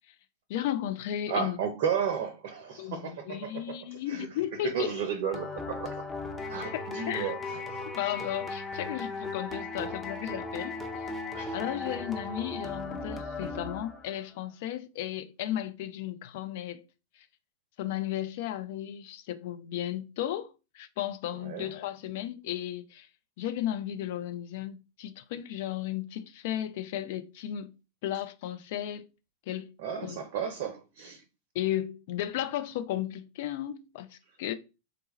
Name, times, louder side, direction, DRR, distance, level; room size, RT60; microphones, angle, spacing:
voice 1, 0.5-1.6 2.8-4.9 6.7-7.4 7.9-10.8 11.5-16.9 17.8-23.1 23.4-27.7 28.0-29.1 29.5-29.7 30.0-30.2 31.5-34.5, left 12 dB, 50° left, 0.4 m, -34 dB
voice 2, 1.3-4.4 4.6-6.0 6.5-7.9 11.3-11.7 21.3-21.7 29.8-31.2, right 6 dB, 50° right, 0.5 m, -33 dB
sound 1, 5.3-14.2, left 3 dB, 10° left, 0.7 m, -37 dB
3.8 x 2.2 x 3.1 m
figure-of-eight pair, 90°, 0 cm